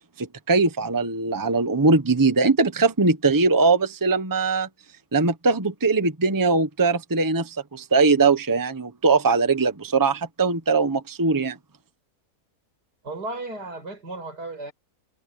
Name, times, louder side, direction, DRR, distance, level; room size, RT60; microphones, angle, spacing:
voice 1, 0.2-4.7 5.1-11.6, right 3 dB, 15° right, 1.0 m, -21 dB
voice 2, 13.0-14.7, right 2 dB, 85° right, 6.5 m, -34 dB
omnidirectional pair, 1.7 m